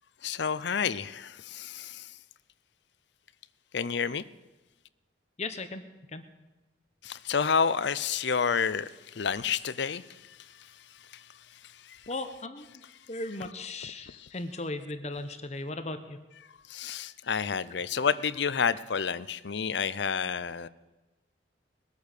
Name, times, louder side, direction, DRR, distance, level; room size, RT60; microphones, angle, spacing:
voice 1, 0.2-2.0 3.7-4.2 7.0-8.9 9.2-10.0 16.7-20.7, left 6 dB, 65° left, 16 dB, 0.6 m, -29 dB
voice 2, 5.4-5.8 6.1-6.2 12.1-12.8 13.1-16.2, left 2 dB, 35° left, 9 dB, 1.0 m, -37 dB
21.0 x 8.4 x 6.7 m, 1.1 s
head